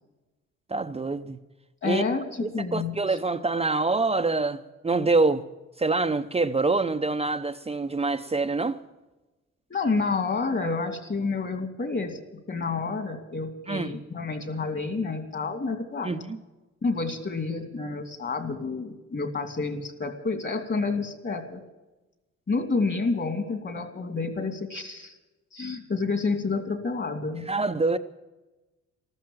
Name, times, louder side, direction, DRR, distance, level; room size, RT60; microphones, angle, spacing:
voice 1, 0.7-1.4 1.8-2.0 2.4-5.4 5.8-8.8 13.7-13.9 16.0-16.4 27.5-28.0, right 3 dB, 20° right, 0.7 m, -25 dB
voice 2, 1.8-3.2 9.7-16.1 16.8-21.6 22.5-25.2 25.5-27.4, left 4 dB, 40° left, 2.7 m, -29 dB
13.5 x 13.5 x 7.3 m
cardioid pair, 90°, 30 cm